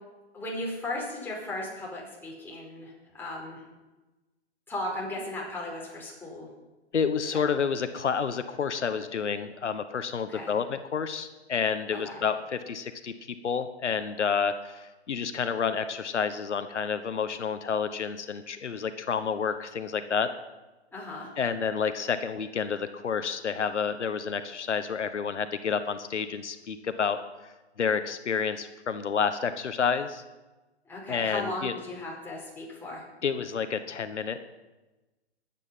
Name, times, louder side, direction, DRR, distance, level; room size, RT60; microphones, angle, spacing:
voice 1, 0.3-3.6 4.7-6.5 7.3-7.4 10.3-10.5 11.9-12.2 20.9-21.3 30.8-33.0, left 1 dB, 5° left, -4 dB, 4.6 m, -36 dB
voice 2, 6.9-13.1 13.4-20.3 21.4-27.2 27.8-30.2 31.1-31.7 33.2-34.4, left 6 dB, 90° left, 10 dB, 1.2 m, -29 dB
21.5 x 9.2 x 5.7 m, 1.1 s
hypercardioid pair, 140°, 34 cm